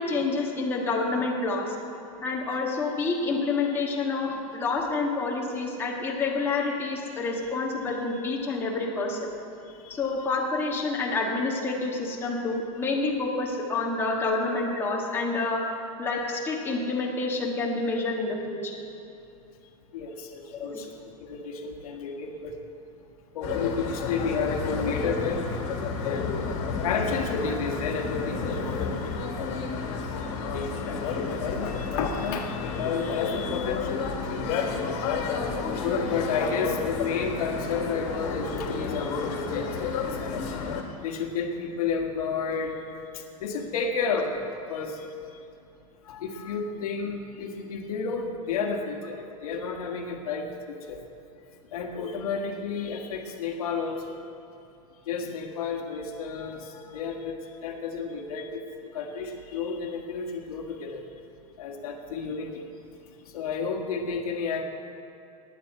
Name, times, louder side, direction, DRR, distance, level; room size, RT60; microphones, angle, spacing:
voice 1, 0.0-1.7 2.2-9.3 9.9-15.6 16.0-18.7 20.5-20.8, left 3 dB, 10° left, -3 dB, 1.5 m, -28 dB
voice 2, 19.9-20.9 21.2-22.5 23.3-25.4 26.0-26.3 26.8-29.8 30.5-34.4 35.8-40.4 41.0-42.8 43.4-45.0 46.1-51.0 51.7-54.2 55.1-57.4 57.6-58.6 58.9-61.0 61.6-62.6 63.3-64.6, left 5 dB, 80° left, 3 dB, 1.6 m, -31 dB
sound 1, 23.4-40.8, left 5 dB, 50° left, 2.0 m, -31 dB
9.9 x 9.0 x 8.9 m, 2.8 s
supercardioid pair, 160°, 19 cm